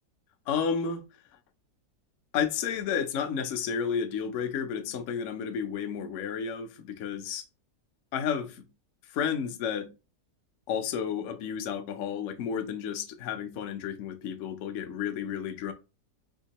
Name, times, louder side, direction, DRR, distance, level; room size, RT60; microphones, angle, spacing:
voice 1, 0.5-1.0 2.3-7.4 8.1-8.6 9.0-9.9 10.7-15.7, left 7 dB, 65° left, 0.8 m, -31 dB
3.6 x 2.8 x 2.8 m
omnidirectional pair, 1.7 m